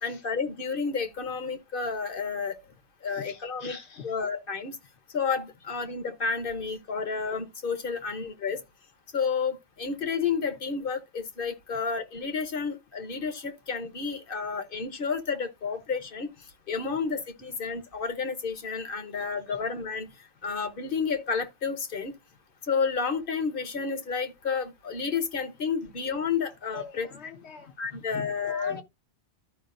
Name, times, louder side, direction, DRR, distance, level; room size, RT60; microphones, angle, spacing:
voice 1, 0.0-2.6 3.0-3.8 4.0-4.8 5.1-8.6 9.1-16.3 16.7-20.1 20.4-22.1 22.7-27.1 27.8-28.7, left 5 dB, 55° left, 1.2 m, -31 dB
voice 2, 3.1-4.2 16.9-17.0 19.2-19.6 20.4-20.5 26.7-28.8, left 5 dB, 80° left, 1.5 m, -44 dB
13.5 x 5.0 x 2.5 m
omnidirectional pair, 1.1 m